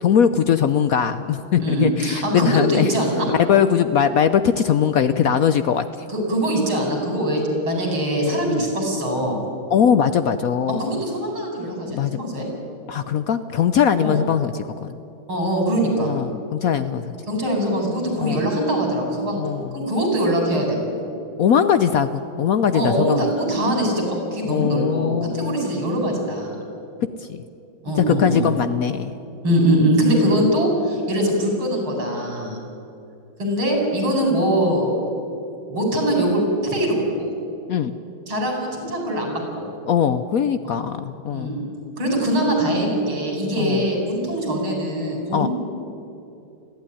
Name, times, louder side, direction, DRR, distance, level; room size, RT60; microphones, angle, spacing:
voice 1, 0.0-2.9 3.3-6.0 8.5-8.6 9.7-10.9 11.9-12.2 12.9-14.9 16.1-17.1 18.2-18.4 19.3-19.8 21.4-23.3 24.5-25.6 27.2-27.4 28.0-29.1 30.1-30.5 37.7-37.9 39.9-41.6 43.6-43.8 45.3-45.5, left 8 dB, 75° left, 11 dB, 0.8 m, -21 dB
voice 2, 1.6-3.3 6.1-7.4 7.6-9.4 10.8-12.5 14.0-14.2 15.3-16.1 17.3-19.4 19.7-20.9 22.7-26.6 27.8-28.5 29.4-32.6 33.4-35.0 35.7-37.3 38.3-39.6 40.6-40.9 41.3-41.7 42.0-45.5, right 1 dB, 90° right, 1 dB, 5.8 m, -22 dB
20.0 x 15.0 x 10.0 m, 2.7 s
omnidirectional pair, 2.2 m